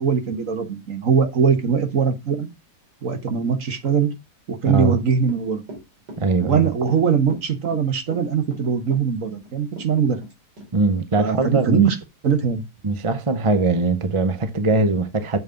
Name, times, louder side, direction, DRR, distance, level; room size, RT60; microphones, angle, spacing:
voice 1, 0.0-2.5 3.0-4.1 4.5-5.6 6.4-10.2 11.2-11.9 12.2-12.6, right 6 dB, 55° right, 1.6 m, -21 dB
voice 2, 4.6-5.0 6.2-6.7 10.7-11.9 12.8-15.4, right 3 dB, 30° right, 0.5 m, -21 dB
Run / Walk footsteps, 5.2-10.3 10.6-10.7, equal, 85° right, 3.5 m, -39 dB
7.4 x 5.5 x 5.1 m
omnidirectional pair, 1.8 m